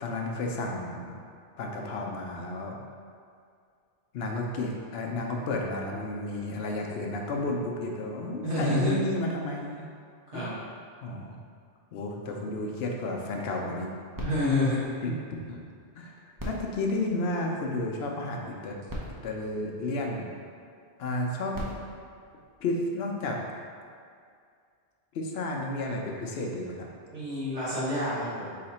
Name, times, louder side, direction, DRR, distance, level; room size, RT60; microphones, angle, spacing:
voice 1, 0.0-1.2 1.6-2.8 4.1-9.9 10.3-10.6 11.0-11.4 11.9-13.9 15.0-15.6 15.9-16.2 16.4-18.8 19.2-20.3 21.0-21.6 22.6-23.4 25.1-26.9, left 2 dB, 65° left, 0 dB, 0.8 m, -32 dB
voice 2, 8.4-9.0 10.3-10.5 14.2-14.8 27.1-28.6, left 1 dB, 80° right, -11 dB, 1.5 m, -28 dB
sound 1, 14.1-15.8 16.3-17.9 18.6-18.7 18.9-20.4 21.3-23.1 23.8-23.9, equal, 25° right, 0.5 m, -42 dB
4.2 x 2.8 x 4.1 m, 2.2 s
omnidirectional pair, 1.2 m